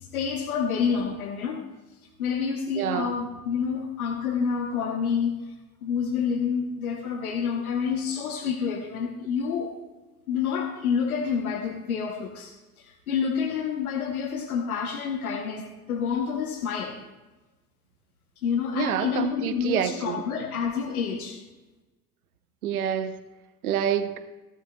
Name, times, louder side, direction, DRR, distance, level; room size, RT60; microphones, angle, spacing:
voice 1, 0.1-1.6 2.2-5.5 5.8-9.7 10.3-17.0 18.4-21.4, left 6 dB, 85° left, 5 dB, 0.9 m, -28 dB
voice 2, 2.8-3.1 18.7-20.2 22.6-23.1 23.6-24.1, right 9 dB, 80° right, 10 dB, 0.8 m, -27 dB
15.5 x 11.0 x 2.2 m, 1.1 s
hypercardioid pair, 65°, 43 cm